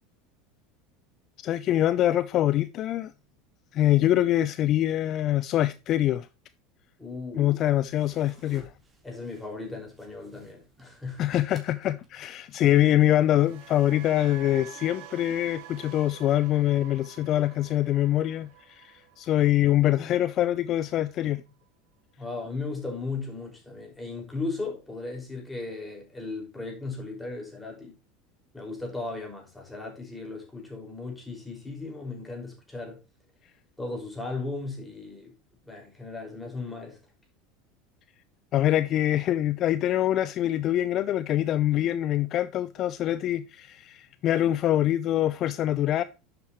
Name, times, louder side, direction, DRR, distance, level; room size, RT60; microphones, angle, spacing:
voice 1, 1.4-3.1 3.7-6.3 7.4-8.7 11.2-21.4 38.5-46.0, left 13 dB, 45° left, 0.5 m, -24 dB
voice 2, 7.0-7.6 9.0-11.3 22.2-27.9 28.5-33.0 33.8-35.3 35.6-37.0, left 3 dB, 10° left, 5.2 m, -36 dB
sound 1, 7.6-12.4, right 2 dB, 20° right, 3.6 m, -56 dB
sound 2, 12.9-21.0 21.3-21.6, right 12 dB, 55° right, 1.8 m, -49 dB
11.0 x 7.9 x 3.0 m
figure-of-eight pair, 75°, 0 cm